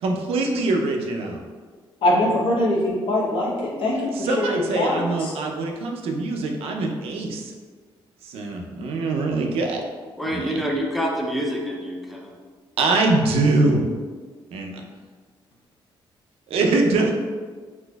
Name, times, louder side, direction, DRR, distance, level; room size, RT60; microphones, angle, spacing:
voice 1, 0.0-1.4 4.1-7.5 8.2-9.8 10.3-10.5 12.8-13.9 14.5-14.8 16.5-17.1, right 2 dB, 85° right, 2 dB, 0.5 m, -23 dB
voice 2, 2.0-5.3, left 1 dB, 60° left, -3 dB, 0.7 m, -23 dB
voice 3, 10.2-12.3, equal, ahead, 0 dB, 0.3 m, -27 dB
4.1 x 2.5 x 2.2 m, 1.5 s
cardioid pair, 170°, 10 cm